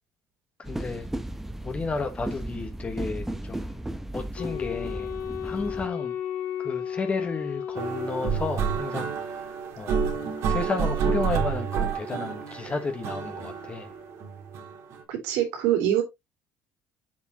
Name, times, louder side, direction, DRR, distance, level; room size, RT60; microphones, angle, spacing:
voice 1, 0.6-1.1 1.6-3.8 4.1-5.1 5.4-6.2 6.6-13.9, left 4 dB, 25° left, 1.4 m, -33 dB
sound 1, 0.6-5.9, right 1 dB, 5° right, 0.9 m, -35 dB
Wind instrument woodwind instrument, 4.4-8.8, left 9 dB, 60° left, 4.0 m, -34 dB
sound 2, 7.8-15.0, right 6 dB, 65° right, 2.6 m, -29 dB
voice 2, 15.1-16.0, right 11 dB, 90° right, 3.2 m, -24 dB
7.5 x 7.1 x 2.9 m
cardioid pair, 120°, 5 cm